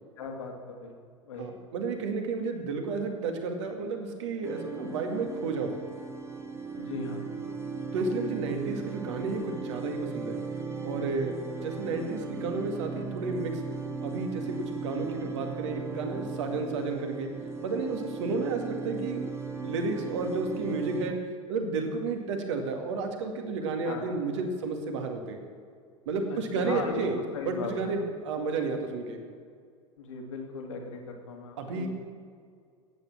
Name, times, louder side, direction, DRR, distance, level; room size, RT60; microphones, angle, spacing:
voice 1, 0.2-0.9 1.3-1.5 6.8-7.3 23.8-24.0 26.5-27.1 27.3-27.9 30.0-31.9, left 4 dB, 65° left, 2 dB, 2.3 m, -38 dB
voice 2, 1.4-5.8 7.9-10.4 10.8-13.6 14.0-17.3 17.6-21.2 21.5-25.4 26.1-27.2 27.5-29.2 31.6-31.9, right 4 dB, 60° right, 4 dB, 2.1 m, -32 dB
sound 1, 4.4-21.1, right 4 dB, 15° right, 1.4 m, -37 dB
14.5 x 9.3 x 7.5 m, 2.2 s
figure-of-eight pair, 80°, 17 cm